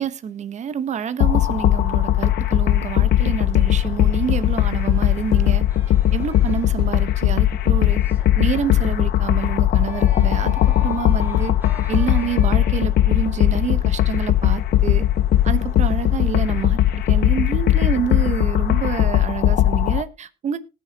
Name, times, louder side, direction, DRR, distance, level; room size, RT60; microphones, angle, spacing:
voice 1, 0.0-5.6 6.1-8.0 8.4-11.5 11.9-15.1 15.4-16.8 17.1-20.6, right 8 dB, 45° right, 1.0 m, -27 dB
sound 1, 1.2-20.0, left 12 dB, 70° left, 0.7 m, -19 dB
sound 2, 4.1-6.7 7.9-8.8 9.8-13.1, right 2 dB, 10° right, 2.3 m, -45 dB
19.5 x 6.6 x 2.8 m
cardioid pair, 110°, 17 cm